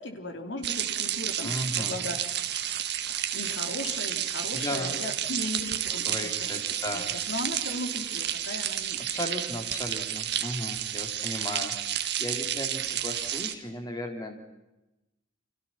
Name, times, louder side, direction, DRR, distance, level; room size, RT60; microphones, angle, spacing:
voice 1, 0.0-2.2 3.3-6.5 6.9-9.1, left 2 dB, 65° left, 6 dB, 3.4 m, -37 dB
sound 1, 0.6-13.5, right 11 dB, 55° right, 1.8 m, -31 dB
voice 2, 1.4-1.9 4.5-4.9 6.1-7.1 9.1-14.4, left 1 dB, 20° left, 4 dB, 3.7 m, -35 dB
30.0 x 26.0 x 5.9 m, 0.96 s
head